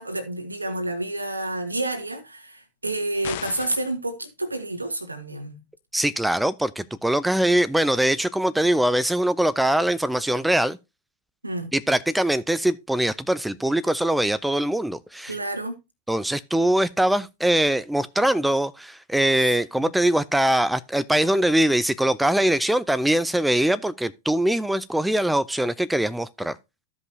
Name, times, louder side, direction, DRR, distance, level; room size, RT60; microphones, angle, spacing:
voice 1, 0.0-5.5 11.4-11.7 15.3-15.8 19.8-19.9, right 2 dB, 80° right, 1.6 m, -29 dB
sound 1, 3.2-4.0, left 14 dB, 50° left, 0.6 m, -35 dB
voice 2, 5.9-10.8 11.7-15.3 16.1-26.6, right 1 dB, 5° right, 0.4 m, -22 dB
14.5 x 5.3 x 2.7 m
figure-of-eight pair, 90°, 0 cm